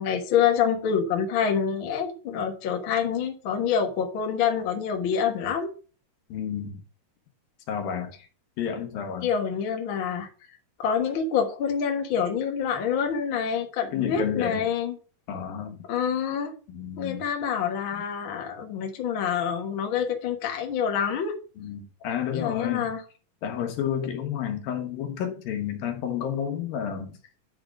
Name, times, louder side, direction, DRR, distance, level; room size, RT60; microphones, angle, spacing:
voice 1, 0.0-5.7 9.2-10.3 10.8-15.0 15.9-16.6 17.0-21.4 22.3-23.0, left 7 dB, 60° left, 1.3 m, -26 dB
voice 2, 6.3-6.8 7.7-8.1 8.6-9.3 13.9-14.7 15.3-15.8 16.7-17.3 21.6-22.9 23.4-27.2, left 8 dB, 75° left, 3.1 m, -30 dB
9.7 x 3.9 x 4.9 m
omnidirectional pair, 4.2 m